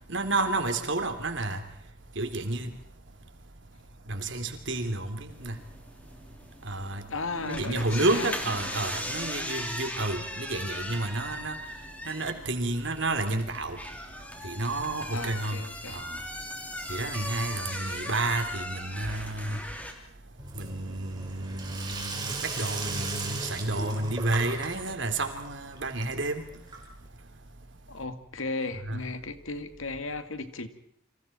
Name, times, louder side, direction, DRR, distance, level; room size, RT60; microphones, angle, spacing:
voice 1, 0.1-1.6 2.2-2.7 4.1-5.6 6.7-7.0 7.3-11.6 12.1-13.8 14.4-15.6 15.9-16.2 16.9-19.6 20.6-26.4 28.9-29.0, right 2 dB, 65° right, 3.4 m, -30 dB
sound 1, 5.3-19.9, left 1 dB, 5° left, 3.2 m, -38 dB
voice 2, 7.1-8.3 15.1-16.1 27.9-30.7, left 3 dB, 80° left, 2.3 m, -35 dB
Sink (filling or washing), 20.4-27.2, right 3 dB, 20° right, 4.8 m, -38 dB
30.0 x 26.5 x 4.5 m
head